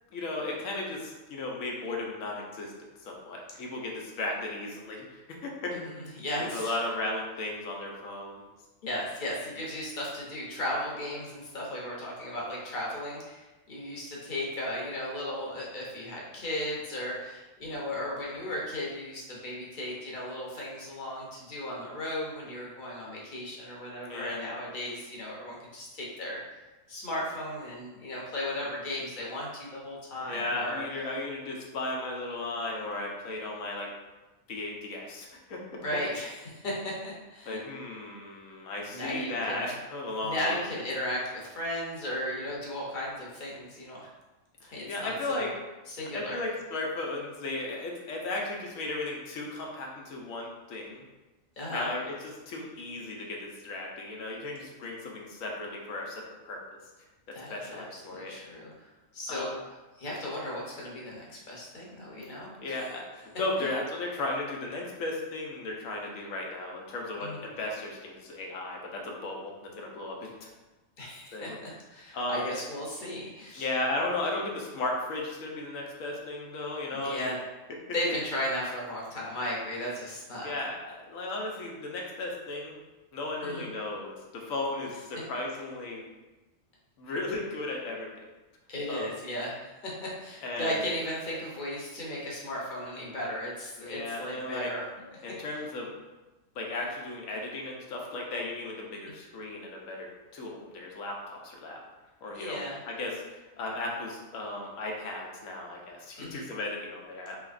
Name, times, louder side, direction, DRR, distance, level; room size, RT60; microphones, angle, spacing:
voice 1, 0.1-2.7 3.0-5.8 6.4-8.4 24.0-24.4 30.2-33.9 34.5-35.8 37.5-40.6 44.6-45.5 46.1-51.0 51.7-56.6 57.3-58.4 59.3-59.5 62.6-70.5 71.3-71.6 72.1-72.4 73.6-77.3 80.4-82.8 83.1-86.0 87.0-88.1 88.9-89.1 90.4-90.8 93.8-94.7 95.2-95.9 96.5-101.8 102.2-103.2 103.6-107.4, left 2 dB, 85° left, 0 dB, 1.1 m, -35 dB
voice 2, 5.7-6.8 8.8-26.4 26.9-30.8 35.7-37.6 38.9-39.6 40.2-44.1 44.7-45.5 45.9-46.4 51.6-51.9 57.3-59.5 60.0-62.7 63.6-63.7 67.2-67.4 71.0-73.7 76.9-77.4 77.9-80.5 83.4-83.7 88.7-89.7 90.0-95.1 102.3-102.8 106.2-106.4, left 1 dB, 45° left, -4 dB, 0.8 m, -36 dB
3.4 x 2.9 x 2.4 m, 1.1 s
omnidirectional pair, 1.3 m